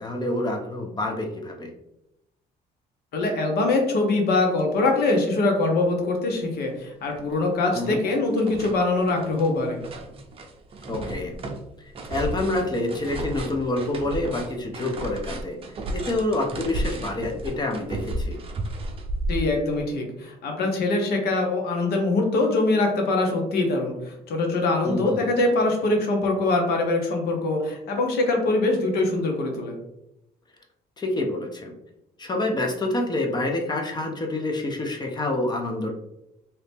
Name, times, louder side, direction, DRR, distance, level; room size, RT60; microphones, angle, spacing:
voice 1, 0.0-1.7 7.7-8.0 10.9-11.3 11.8-15.6 15.9-18.4 24.8-25.3 31.0-31.7 32.2-35.9, left 2 dB, 25° left, 2 dB, 0.6 m, -27 dB
voice 2, 3.1-9.8 19.3-29.8, left 2 dB, 70° left, 2 dB, 0.9 m, -23 dB
sound 1, 6.7-6.8 7.2-7.9 8.1-19.8, right 1 dB, 35° right, 0.5 m, -33 dB
2.8 x 2.6 x 3.5 m, 0.85 s
cardioid pair, 110°, 17 cm